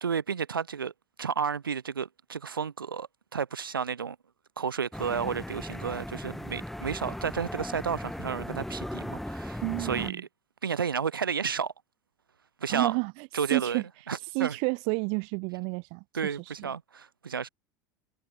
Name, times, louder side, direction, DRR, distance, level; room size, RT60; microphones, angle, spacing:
voice 1, 0.0-0.9 1.2-4.2 4.6-10.3 10.6-11.7 12.6-12.9 13.3-14.6 16.1-17.5, right 6 dB, 80° right, 0.9 m, -32 dB
sound 1, 4.9-10.1, left 1 dB, ahead, 0.7 m, -37 dB
voice 2, 9.6-10.2 12.7-13.8 14.3-16.7, right 36 dB, 50° right, 0.4 m, -31 dB
figure-of-eight pair, 70°, 11 cm